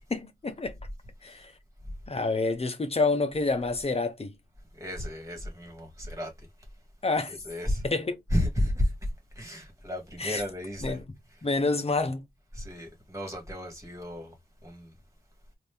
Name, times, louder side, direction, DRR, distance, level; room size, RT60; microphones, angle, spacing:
voice 1, 0.1-0.8 1.2-1.5 2.1-4.4 7.0-7.4 7.8-8.2 10.2-10.4 10.8-11.0 11.4-12.2, left 3 dB, 40° left, 0.9 m, -28 dB
voice 2, 4.7-6.3 7.5-7.8 8.3-9.1 9.4-11.0 12.5-14.3 14.6-14.9, left 1 dB, 20° right, 2.2 m, -32 dB
4.0 x 2.7 x 3.4 m
wide cardioid pair, 110°, 16 cm